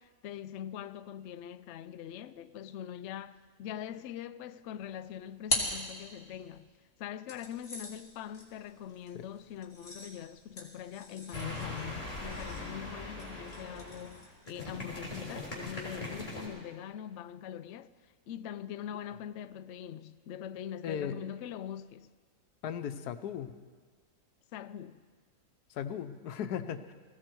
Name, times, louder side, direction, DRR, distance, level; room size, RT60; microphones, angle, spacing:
voice 1, 0.0-6.7 7.0-22.1 24.5-25.0, left 10 dB, 65° left, 0.7 m, -43 dB
sound 1, 4.8-6.6 7.3-14.9, left 2 dB, 40° left, 3.0 m, -41 dB
sound 2, 11.3-16.5, left 2 dB, 20° left, 3.8 m, -41 dB
voice 2, 20.8-21.2 22.6-23.5 25.7-26.9, left 8 dB, 85° left, 1.3 m, -37 dB
19.5 x 16.0 x 4.6 m
omnidirectional pair, 1.6 m